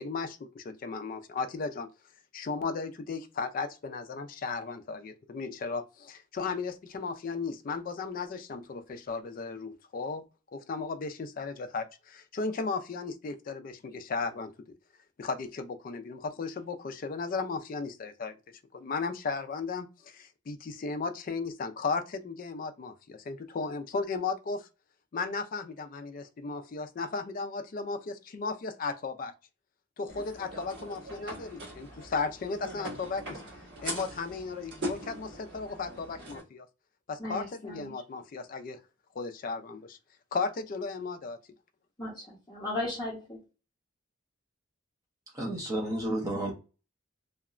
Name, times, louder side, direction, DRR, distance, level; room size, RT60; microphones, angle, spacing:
voice 1, 0.0-1.9 2.3-10.2 10.5-14.5 15.2-18.3 18.7-24.7 25.1-29.3 30.0-33.4 33.8-36.7 37.1-38.8 39.2-40.0 40.3-41.4, left 4 dB, 45° left, 0.3 m, -35 dB
sound 1, 30.1-36.4, right 1 dB, 60° right, 1.4 m, -41 dB
voice 2, 37.2-37.9 42.0-43.4, left 1 dB, 20° left, 0.7 m, -36 dB
voice 3, 45.3-46.5, right 1 dB, 15° right, 0.6 m, -31 dB
2.8 x 2.1 x 2.4 m
head